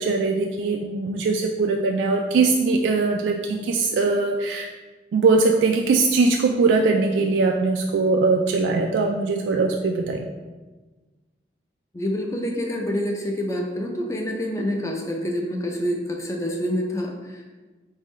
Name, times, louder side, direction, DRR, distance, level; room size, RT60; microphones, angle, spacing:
voice 1, 0.0-4.7 5.1-10.3, right 3 dB, 85° right, 2 dB, 0.3 m, -21 dB
voice 2, 11.9-17.6, equal, 15° left, 1 dB, 0.5 m, -27 dB
4.0 x 3.6 x 3.1 m, 1.3 s
head